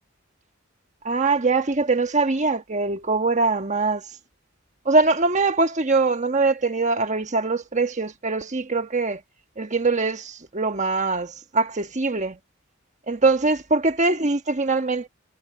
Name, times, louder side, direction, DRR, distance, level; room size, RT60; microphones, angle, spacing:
voice 1, 1.0-4.0 4.8-9.2 9.6-12.4 13.1-15.1, right 3 dB, 35° right, 1.3 m, -22 dB
head